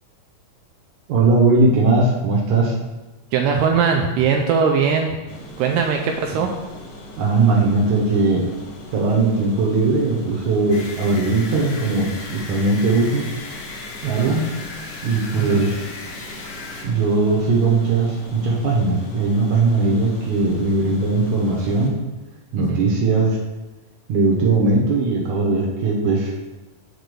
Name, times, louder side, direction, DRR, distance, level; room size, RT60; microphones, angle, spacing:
voice 1, 1.1-2.8 7.2-8.5 8.9-13.2 14.1-14.4 15.0-15.8 16.8-21.9 22.5-23.4 24.1-26.3, right 3 dB, 70° right, -2 dB, 1.9 m, -19 dB
voice 2, 3.3-5.2 5.6-6.5 14.0-14.3 15.4-15.6 22.6-22.8, right 6 dB, 85° right, 2 dB, 1.9 m, -20 dB
sound 1, 5.3-21.9, left 1 dB, 70° left, 2.8 m, -40 dB
sound 2, 10.7-16.9, left 3 dB, 85° left, 3.3 m, -36 dB
7.8 x 3.9 x 6.7 m, 1.1 s
omnidirectional pair, 4.5 m